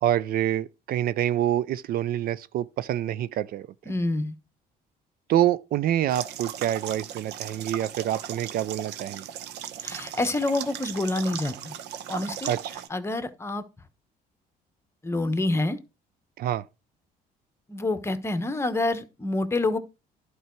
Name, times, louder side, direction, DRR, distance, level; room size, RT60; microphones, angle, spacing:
voice 1, 0.0-3.7 5.3-9.2 12.5-12.6 16.4-16.6, right 12 dB, 60° right, 0.4 m, -26 dB
voice 2, 3.9-4.3 9.8-11.7 12.1-13.6 15.0-15.8 17.7-19.8, left 2 dB, 15° left, 1.0 m, -27 dB
sound 1, 6.1-12.9, right 10 dB, 80° right, 0.9 m, -37 dB
11.0 x 4.6 x 4.5 m
cardioid pair, 110°, 17 cm